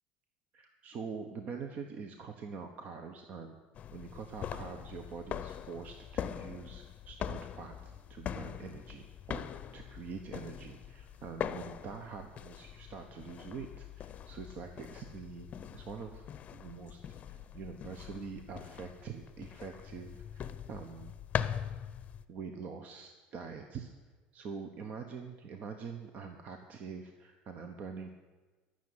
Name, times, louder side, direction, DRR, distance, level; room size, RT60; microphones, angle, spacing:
voice 1, 0.5-3.6 3.9-16.3 16.5-17.0 17.3-21.1 22.3-23.9 24.3-28.1, right 5 dB, 50° right, 5 dB, 1.1 m, -45 dB
sound 1, 3.8-22.3, left 9 dB, 40° left, 0.7 m, -42 dB
13.5 x 6.6 x 9.9 m, 1.3 s
supercardioid pair, 115°, 4 cm